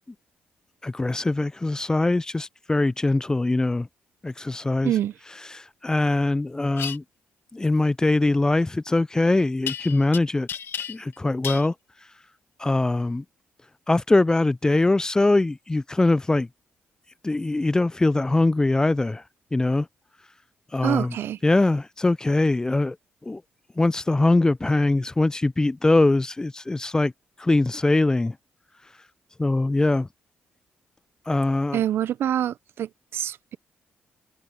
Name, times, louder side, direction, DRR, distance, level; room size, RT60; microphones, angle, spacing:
voice 1, 0.8-3.9 4.2-4.9 5.5-7.0 7.5-10.5 10.9-11.7 12.6-13.2 13.9-16.5 17.2-19.2 19.5-19.9 20.7-21.2 21.4-23.0 23.2-23.4 23.8-27.1 27.4-28.4 29.4-30.1 31.3-31.8, left 2 dB, 15° left, 0.3 m, -22 dB
sound 1, 6.7-7.0 9.7-10.2 10.5-11.2 11.4-11.7, left 8 dB, 70° left, 2.0 m, -32 dB
voice 2, 20.8-21.4 31.7-33.6, right 11 dB, 70° right, 0.5 m, -26 dB
supercardioid pair, 65°, 4 cm